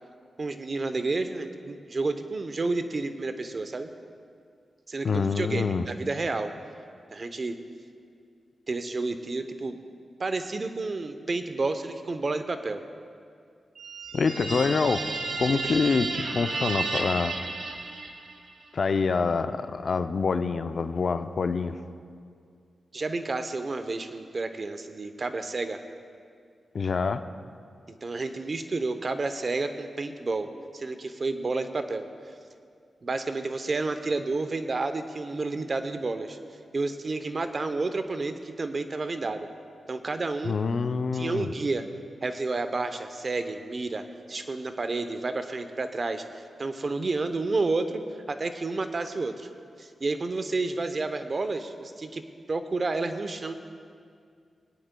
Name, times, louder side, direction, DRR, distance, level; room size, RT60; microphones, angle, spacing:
voice 1, 0.4-3.9 4.9-6.5 7.1-7.6 8.7-9.8 10.2-12.8 15.6-15.8 22.9-25.8 28.0-30.5 30.7-32.1 33.0-36.4 36.7-39.5 39.9-40.6 41.1-41.9 42.2-48.0 48.3-49.5 49.8-52.2 52.5-53.5, right 3 dB, 50° right, 9 dB, 0.7 m, -30 dB
voice 2, 5.0-5.9 14.1-15.1 15.4-17.3 18.7-21.8 26.7-27.2 40.4-41.5, left 4 dB, 60° left, 9 dB, 0.5 m, -26 dB
sound 1, 13.8-18.5, right 3 dB, 75° right, 1.0 m, -32 dB
22.5 x 9.1 x 2.2 m, 2.3 s
cardioid pair, 55°, 0 cm